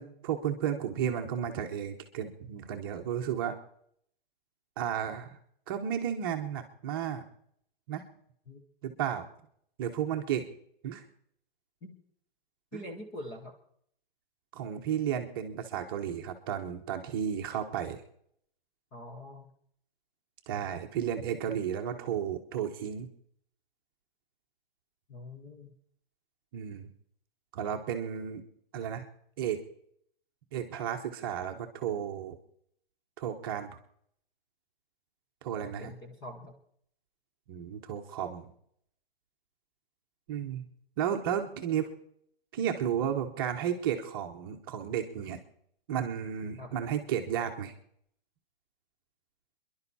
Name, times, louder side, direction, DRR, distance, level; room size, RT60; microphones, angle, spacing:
voice 1, 0.0-3.5 4.8-5.4 5.7-7.2 7.9-8.0 8.8-9.2 9.8-10.5 10.8-11.0 12.7-12.8 14.5-18.0 20.5-23.1 26.5-26.9 27.5-28.4 28.7-29.1 29.4-29.6 30.5-32.3 33.2-33.8 35.4-35.9 37.5-38.5 40.3-40.6 41.0-41.9 42.5-45.4 45.9-47.7, right 9 dB, 25° right, 4 dB, 1.1 m, -33 dB
voice 2, 12.7-13.5 18.9-19.5 25.1-25.7 35.8-36.5 46.6-46.7, left 1 dB, 10° left, 3 dB, 0.9 m, -44 dB
29.5 x 11.5 x 4.2 m, 0.68 s
hypercardioid pair, 175°, 29 cm